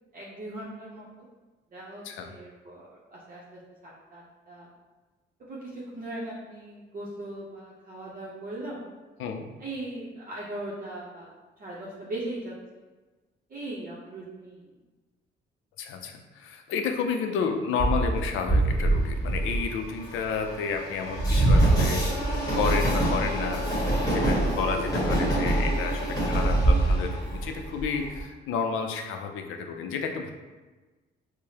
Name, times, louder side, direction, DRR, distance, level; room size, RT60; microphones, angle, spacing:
voice 1, 0.1-1.3 1.7-4.7 5.4-8.8 9.6-11.3 11.6-12.5 13.5-14.6, right 1 dB, 45° right, -6 dB, 0.7 m, -39 dB
voice 2, 15.8-30.3, left 5 dB, 85° left, 4 dB, 0.4 m, -31 dB
Train, 17.8-28.2, right 1 dB, 20° left, 1.3 m, -24 dB
4.7 x 2.1 x 2.8 m, 1.2 s
cardioid pair, 90°, 20 cm